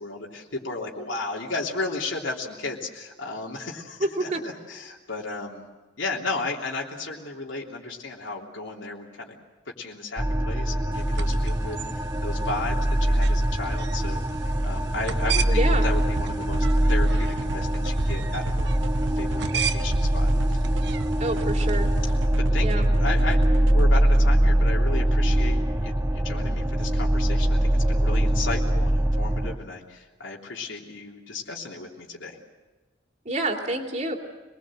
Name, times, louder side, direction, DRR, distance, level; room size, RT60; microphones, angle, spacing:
voice 1, 0.0-5.6 6.0-9.4 9.8-18.7 19.2-20.6 22.0-32.4, left 3 dB, 85° left, -2 dB, 3.2 m, -34 dB
voice 2, 4.0-4.4 15.5-15.8 21.2-21.9 22.6-22.8 33.2-34.2, right 2 dB, 40° right, 3 dB, 2.8 m, -27 dB
sound 1, 10.2-29.6, right 1 dB, 15° right, 0.9 m, -23 dB
sound 2, 10.9-22.2, right 7 dB, 65° right, 1.2 m, -37 dB
sound 3, 16.2-23.9, right 3 dB, 85° right, 0.7 m, -35 dB
25.5 x 20.5 x 7.7 m, 1.3 s
head